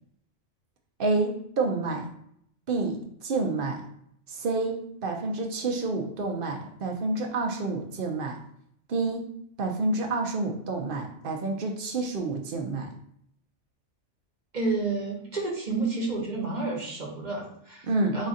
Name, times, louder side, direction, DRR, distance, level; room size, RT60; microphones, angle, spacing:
voice 1, 1.0-2.1 2.7-3.8 4.3-8.4 8.9-9.3 9.6-12.9 17.8-18.2, right 3 dB, 55° right, 3 dB, 0.7 m, -29 dB
voice 2, 14.5-18.3, right 3 dB, 40° right, -2 dB, 1.2 m, -30 dB
4.1 x 2.5 x 3.9 m, 0.69 s
omnidirectional pair, 1.3 m